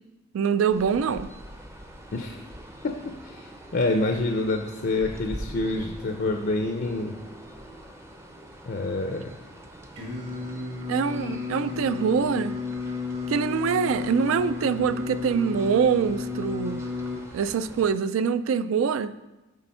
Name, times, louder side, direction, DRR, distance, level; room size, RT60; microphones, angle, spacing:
voice 1, 0.3-1.3 10.9-12.6 13.3-16.9 17.3-19.1, right 6 dB, 80° right, 14 dB, 0.3 m, -24 dB
sound 1, 0.7-17.9, equal, 15° right, 0.5 m, -44 dB
voice 2, 2.1-2.4 2.8-7.1 8.7-9.3, left 2 dB, 50° left, 4 dB, 0.4 m, -27 dB
Singing, 10.0-17.2, left 4 dB, 60° right, 1.8 m, -32 dB
8.3 x 3.5 x 5.4 m, 1.0 s
head